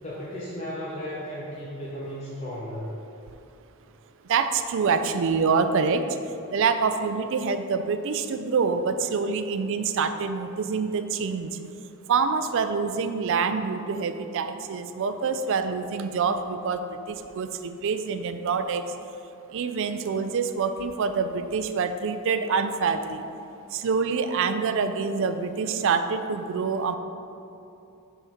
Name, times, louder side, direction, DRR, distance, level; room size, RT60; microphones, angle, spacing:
voice 1, 0.0-3.0, equal, 30° left, -8 dB, 0.8 m, -35 dB
voice 2, 4.3-6.1 6.5-11.6 12.1-18.8 19.5-23.2 23.7-27.0, right 5 dB, 60° right, 9 dB, 0.4 m, -26 dB
5.0 x 3.8 x 5.7 m, 2.7 s
head